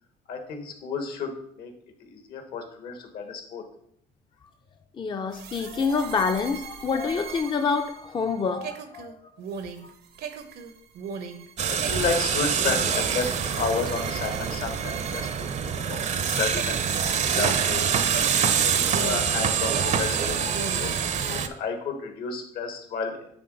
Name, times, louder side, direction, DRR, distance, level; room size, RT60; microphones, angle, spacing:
voice 1, 0.3-1.7 2.0-3.6 11.7-18.3 18.6-23.3, left 5 dB, 65° left, 5 dB, 1.5 m, -32 dB
voice 2, 5.0-9.2 9.8-9.9, left 5 dB, 30° left, 6 dB, 0.5 m, -27 dB
sound 1, 5.3-16.2 16.5-19.4 19.7-21.0, right 6 dB, 70° right, 0.8 m, -39 dB
sound 2, 11.6-21.5, right 7 dB, 45° right, 0.6 m, -25 dB
9.5 x 3.7 x 3.9 m, 0.70 s
cardioid pair, 110°, 17 cm